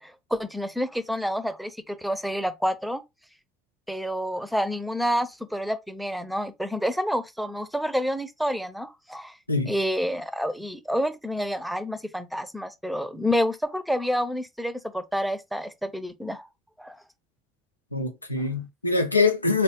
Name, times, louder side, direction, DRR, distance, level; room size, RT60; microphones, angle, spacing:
voice 1, 0.0-3.0 3.9-9.4 9.6-16.5 16.8-17.0, equal, ahead, 0.6 m, -28 dB
voice 2, 17.9-19.6, left 3 dB, 90° left, 0.5 m, -24 dB
3.8 x 2.5 x 3.6 m
figure-of-eight pair, 60°, 0 cm